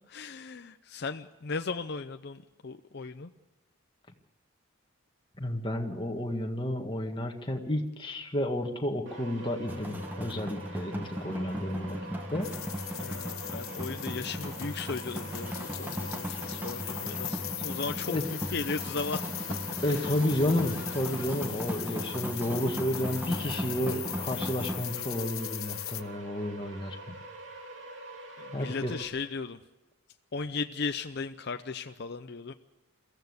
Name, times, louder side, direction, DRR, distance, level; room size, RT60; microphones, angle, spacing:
voice 1, 0.1-3.3 13.0-19.5 19.8-20.1 28.4-29.6 30.3-32.5, left 4 dB, 50° left, 8 dB, 0.6 m, -37 dB
voice 2, 5.4-12.0 12.3-12.5 18.1-18.2 19.8-27.1 28.5-28.9, left 1 dB, 25° left, 3 dB, 1.7 m, -31 dB
sound 1, 9.1-29.1, right 1 dB, 60° right, 3.2 m, -45 dB
sound 2, 9.7-24.8, equal, 10° right, 1.4 m, -38 dB
sound 3, 12.4-26.0, left 16 dB, 80° left, 1.0 m, -39 dB
23.0 x 15.0 x 8.2 m, 1.1 s
head